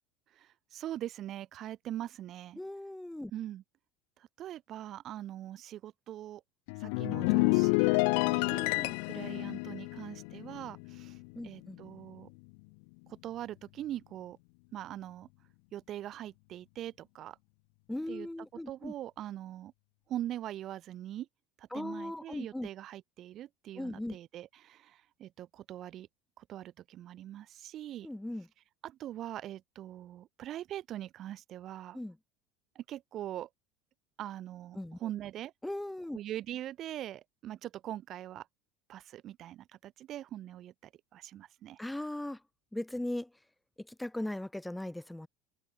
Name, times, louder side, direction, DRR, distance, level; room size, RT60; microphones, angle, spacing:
voice 1, 0.3-2.6 3.3-3.6 4.2-6.4 6.8-8.6 9.0-11.2 11.4-12.3 13.2-14.4 14.7-15.3 15.7-17.4 18.1-18.3 18.7-19.7 20.1-21.3 21.6-26.1 26.4-28.1 28.8-32.0 32.7-33.5 34.2-35.5 36.1-38.5 38.9-41.8, right 12 dB, 40° right, 6.5 m, -42 dB
voice 2, 2.6-3.3 8.5-9.0 11.3-11.8 17.9-18.9 21.7-22.7 23.7-24.2 28.0-28.5 31.9-32.2 34.7-35.0 35.6-36.2 41.8-42.4 42.7-43.3 43.8-45.3, left 1 dB, 5° left, 3.4 m, -38 dB
sound 1, 6.7-11.3 11.6-11.9, left 37 dB, 70° left, 2.2 m, -29 dB
supercardioid pair, 140°, 0 cm